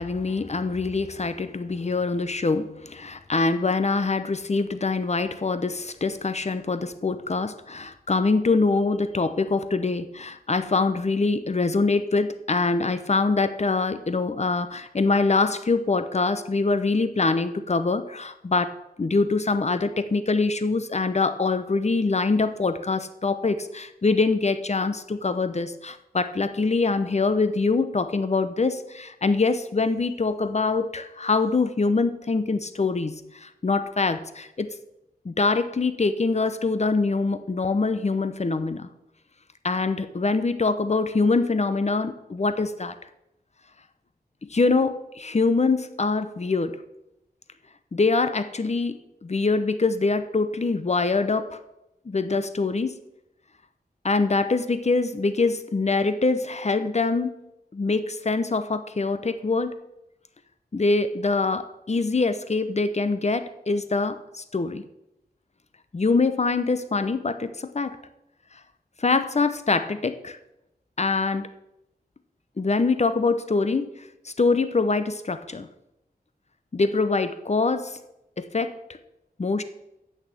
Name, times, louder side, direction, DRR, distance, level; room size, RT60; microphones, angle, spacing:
voice 1, 0.0-18.7 19.0-33.1 33.4-34.7 35.2-38.9 39.6-42.9 44.5-46.7 47.9-51.6 52.1-52.9 54.0-57.3 57.7-59.7 60.7-64.2 64.5-64.8 65.9-68.0 69.0-70.4 71.0-71.5 72.6-73.9 74.4-75.7 76.7-78.0 78.4-78.7 79.4-79.6, left 3 dB, 40° left, 11 dB, 0.8 m, -24 dB
8.4 x 6.4 x 7.7 m, 0.88 s
wide cardioid pair, 75°, 17 cm